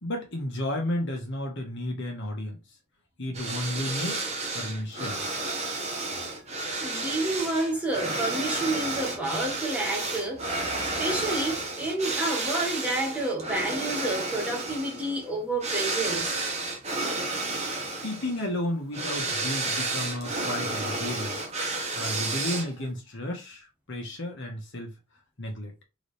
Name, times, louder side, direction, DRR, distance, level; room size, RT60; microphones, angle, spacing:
voice 1, 0.0-2.6 3.2-5.2 18.0-21.4 21.9-24.9 25.4-25.7, left 1 dB, 60° left, 1.6 m, -33 dB
sound 1, 3.3-22.9, right 2 dB, 30° right, 1.2 m, -31 dB
voice 2, 6.8-16.4 21.9-22.0, right 2 dB, 5° right, 1.3 m, -30 dB
4.1 x 3.9 x 3.3 m
head